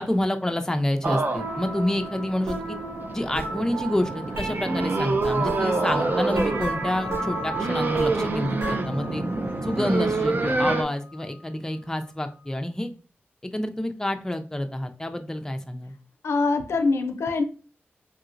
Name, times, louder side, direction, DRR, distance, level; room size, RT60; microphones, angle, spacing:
voice 1, 0.0-2.8 3.1-9.2 9.6-12.9 13.5-15.9, left 1 dB, 15° left, 6 dB, 0.5 m, -28 dB
sound 1, 1.0-10.8, right 3 dB, 45° right, 0.4 m, -27 dB
sound 2, 1.3-8.8, right 2 dB, 85° right, 0.9 m, -32 dB
sound 3, 4.8-12.6, left 4 dB, 15° right, 1.0 m, -47 dB
voice 2, 16.2-17.4, left 3 dB, 85° left, 7 dB, 0.4 m, -23 dB
3.1 x 2.8 x 2.5 m, 0.36 s
cardioid pair, 55°, 4 cm